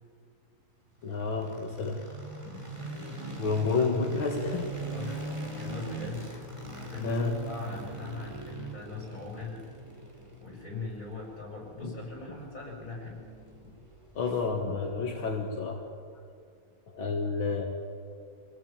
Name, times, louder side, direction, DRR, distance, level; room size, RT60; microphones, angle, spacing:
voice 1, 1.0-2.0 2.5-2.7 3.4-4.7 7.0-7.4 11.8-12.0 14.2-15.8 16.9-17.6, left 4 dB, 80° left, 0 dB, 2.7 m, -30 dB
sound 1, 1.0-15.1, right 2 dB, 15° right, 3.6 m, -41 dB
voice 2, 3.5-3.9 4.9-6.3 6.8-9.7 10.4-13.3, left 3 dB, 40° left, -2 dB, 7.4 m, -40 dB
26.5 x 18.0 x 9.0 m, 2.3 s
omnidirectional pair, 2.1 m